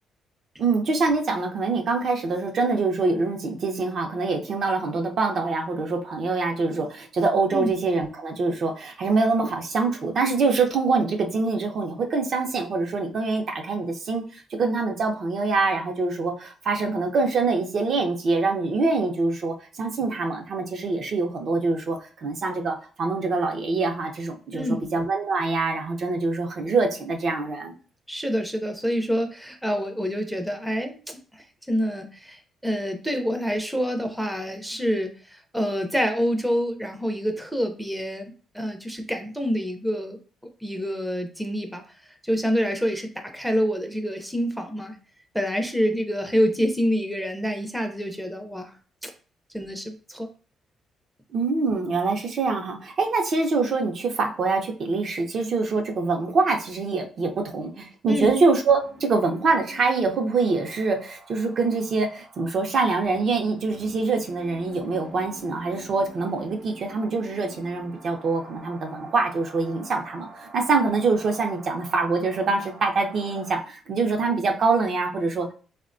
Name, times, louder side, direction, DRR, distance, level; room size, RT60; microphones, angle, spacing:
voice 1, 0.6-27.7 51.3-75.5, right 3 dB, 55° right, 2 dB, 0.5 m, -24 dB
voice 2, 24.5-24.9 28.1-40.2 40.6-41.8 42.2-45.0 45.3-48.7 49.0-49.1 49.5-50.3 58.1-58.3, equal, ahead, 4 dB, 0.4 m, -27 dB
sound 1, 58.5-73.6, right 1 dB, 85° right, 0.8 m, -47 dB
3.4 x 2.1 x 2.5 m, 0.38 s
cardioid pair, 90°, 0 cm